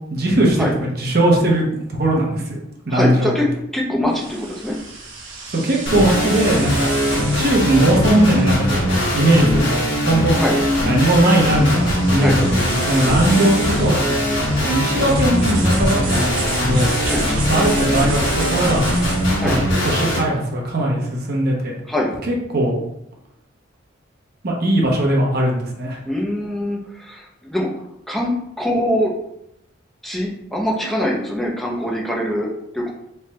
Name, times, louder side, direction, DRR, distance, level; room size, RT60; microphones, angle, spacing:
voice 1, 0.1-0.7 1.0-2.6 2.9-3.3 5.5-6.9 7.3-8.8 9.1-10.4 10.8-14.3 14.6-16.9 17.5-18.8 19.4-21.7 22.3-22.7 24.4-26.0, right 1 dB, 50° right, -2 dB, 0.8 m, -19 dB
voice 2, 2.9-3.5 3.7-4.8 10.4-10.6 12.2-12.4 13.3-13.5 17.0-17.3 19.4-19.6 21.9-22.1 26.1-27.7 28.1-29.1 30.0-32.5 32.7-32.9, left 1 dB, ahead, -3 dB, 0.6 m, -23 dB
sound 1, 4.1-19.5, right 2 dB, 80° right, 0.9 m, -32 dB
sound 2, 5.9-20.2, equal, 65° left, 1.3 m, -20 dB
3.3 x 2.3 x 4.1 m, 0.81 s
head